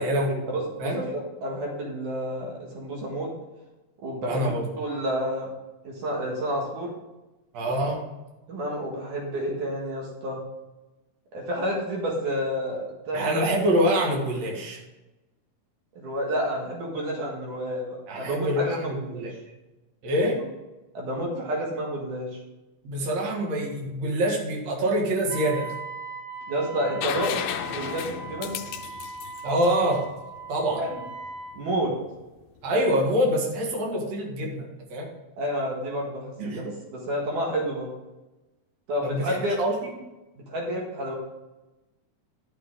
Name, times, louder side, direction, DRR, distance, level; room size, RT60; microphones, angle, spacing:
voice 1, 0.0-0.3 0.8-1.0 4.2-4.6 7.5-8.0 13.1-14.8 18.1-19.3 20.0-20.4 22.8-25.7 29.4-30.0 30.5-30.8 32.6-35.1 36.4-36.6 39.0-39.9, equal, 60° right, -1 dB, 3.1 m, -25 dB
voice 2, 0.5-3.3 4.0-4.5 4.8-5.5 5.8-6.9 8.5-10.4 11.3-13.4 16.0-19.3 20.9-22.4 26.5-27.4 27.6-28.6 30.8-31.0 31.5-31.9 35.4-37.9 38.9-39.6 40.5-41.2, equal, 80° right, -1 dB, 3.3 m, -30 dB
Wind instrument woodwind instrument, 25.3-31.5, right 4 dB, 30° right, 4.2 m, -39 dB
sound 1, 27.0-30.7 32.6-32.7, left 10 dB, 90° left, 1.4 m, -34 dB
12.0 x 6.7 x 3.8 m, 1.0 s
omnidirectional pair, 3.5 m